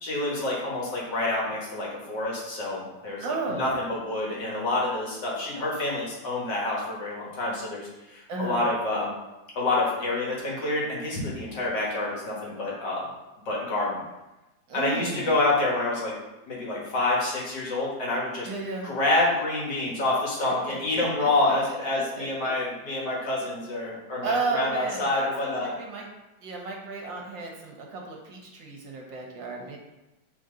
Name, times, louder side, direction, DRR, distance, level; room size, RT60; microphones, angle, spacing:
voice 1, 0.0-9.1 9.5-13.1 13.5-14.0 14.7-16.1 16.5-18.5 18.8-25.7, left 2 dB, 60° left, -4 dB, 2.2 m, -27 dB
voice 2, 3.2-3.7 8.3-8.6 14.7-15.4 18.5-18.9 20.4-22.5 24.2-26.0 26.4-29.8, right 3 dB, 70° right, 0 dB, 1.8 m, -34 dB
7.0 x 4.3 x 3.8 m, 1.0 s
omnidirectional pair, 2.1 m